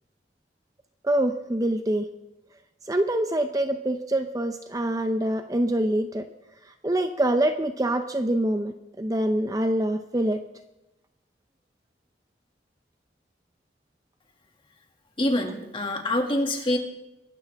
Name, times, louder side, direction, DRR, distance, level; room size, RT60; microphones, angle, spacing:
voice 1, 1.0-2.1 2.8-6.3 6.6-10.4, right 1 dB, 20° right, 7 dB, 0.6 m, -25 dB
voice 2, 15.2-16.8, left 1 dB, 30° left, 3 dB, 2.1 m, -25 dB
24.0 x 13.0 x 3.5 m, 0.95 s
head